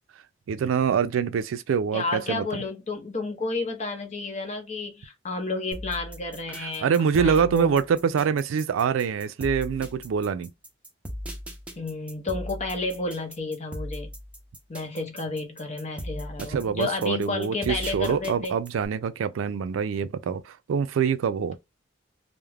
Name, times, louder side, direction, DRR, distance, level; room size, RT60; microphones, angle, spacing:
voice 1, 0.5-2.6 6.6-10.5 16.4-21.6, right 6 dB, 85° right, 0.3 m, -25 dB
voice 2, 1.9-7.7 11.8-14.1 14.7-18.6, left 3 dB, 35° left, 0.7 m, -31 dB
sound 1, 5.7-18.9, equal, 5° right, 0.6 m, -38 dB
2.3 x 2.0 x 3.2 m
head